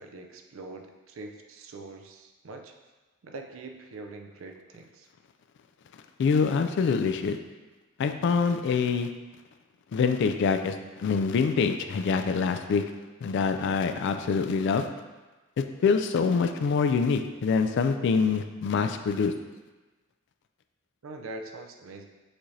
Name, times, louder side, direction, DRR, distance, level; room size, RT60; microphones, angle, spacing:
voice 1, 0.0-2.7 3.2-5.1 21.0-22.1, right 3 dB, 75° right, 4 dB, 0.5 m, -43 dB
voice 2, 6.2-7.4 8.0-9.1 9.9-12.8 13.2-14.9 15.6-19.3, left 5 dB, 60° left, 7 dB, 0.3 m, -25 dB
5.9 x 2.6 x 3.2 m, 1.2 s
head